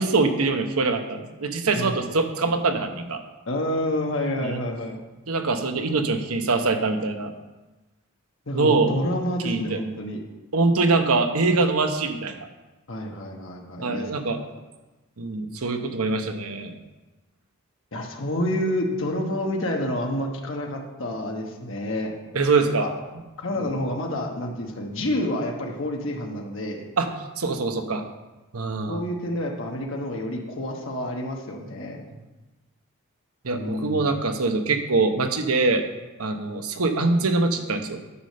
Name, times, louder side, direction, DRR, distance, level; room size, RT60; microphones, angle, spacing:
voice 1, 0.0-3.2 4.4-4.6 5.3-7.3 8.5-9.0 9.4-9.8 10.5-12.5 13.8-14.4 15.2-16.7 22.3-23.0 23.6-23.7 27.0-27.1 27.4-28.0 28.5-29.0 33.4-35.8 36.2-38.0, right 3 dB, 85° right, 6 dB, 1.0 m, -23 dB
voice 2, 3.5-5.0 8.5-10.2 12.9-14.1 17.9-22.1 22.8-22.9 23.4-26.9 28.9-32.0 33.5-34.2, left 1 dB, 60° left, 1 dB, 1.2 m, -28 dB
9.9 x 5.0 x 6.6 m, 1.1 s
head